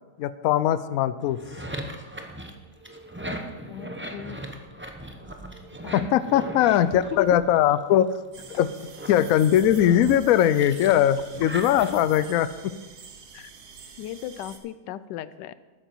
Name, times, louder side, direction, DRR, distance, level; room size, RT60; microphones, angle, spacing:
voice 1, 0.2-1.4 5.9-8.2 8.6-8.7 9.1-12.7, left 11 dB, 70° left, 14 dB, 0.8 m, -20 dB
sound 1, 1.2-7.9 8.4-12.3, right 1 dB, 15° right, 0.4 m, -39 dB
voice 2, 3.7-4.4 5.8-6.0 6.7-6.8 7.1-7.4 13.3-13.5 14.0-15.5, left 12 dB, 90° left, 15 dB, 1.2 m, -36 dB
sound 2, 8.3-14.6, right 6 dB, 65° right, 1.6 m, -47 dB
12.5 x 8.9 x 4.6 m, 1.2 s
omnidirectional pair, 1.8 m